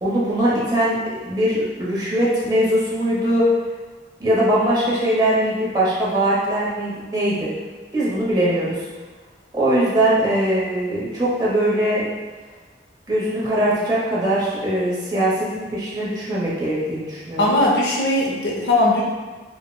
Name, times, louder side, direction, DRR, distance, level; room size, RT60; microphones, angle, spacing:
voice 1, 0.0-0.9 1.2-3.4 4.2-7.5 7.9-8.8 9.5-12.1 13.1-17.5, right 1 dB, 25° right, -8 dB, 0.9 m, -21 dB
voice 2, 17.4-19.0, left 2 dB, 70° left, -3 dB, 0.6 m, -19 dB
4.6 x 2.1 x 2.2 m, 1.3 s
head